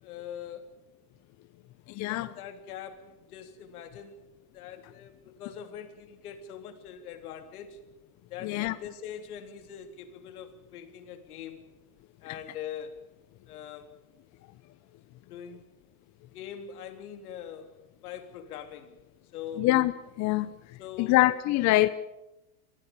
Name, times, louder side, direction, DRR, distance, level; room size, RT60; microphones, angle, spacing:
voice 1, 0.0-0.8 2.1-7.8 8.3-11.7 12.2-13.0 13.5-13.9 15.3-15.6 16.3-19.0 19.3-19.7 20.4-21.3, left 8 dB, 75° left, 3.3 m, -43 dB
voice 2, 2.0-2.3 8.4-8.7 19.6-19.9 20.2-20.5 21.0-21.9, left 17 dB, 40° left, 0.9 m, -23 dB
24.5 x 16.0 x 8.4 m
supercardioid pair, 120°, 44 cm